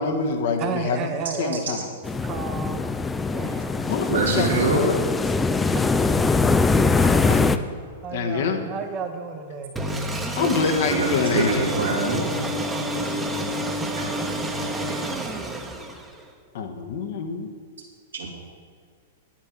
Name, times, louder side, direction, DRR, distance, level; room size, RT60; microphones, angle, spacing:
voice 1, 0.0-1.1 1.4-1.9 3.4-3.5 3.9-5.0 7.0-7.4 8.1-8.6 10.3-11.7 16.5-17.5, left 5 dB, 55° left, 5 dB, 1.3 m, -25 dB
voice 2, 0.6-1.7 2.2-2.9 3.3-3.9 5.7-6.1 8.0-9.7 12.2-13.3 14.7-15.7, right 6 dB, 30° right, 5 dB, 1.1 m, -34 dB
sound 1, 2.0-7.6, left 3 dB, 10° left, 0.5 m, -22 dB
voice 3, 4.1-4.8 10.8-12.2 14.0-14.1 18.1-18.3, right 4 dB, 75° right, -1 dB, 2.6 m, -24 dB
sound 2, 9.8-16.3, right 1 dB, 10° right, 1.1 m, -28 dB
10.5 x 8.9 x 5.9 m, 2.1 s
figure-of-eight pair, 100°, 0 cm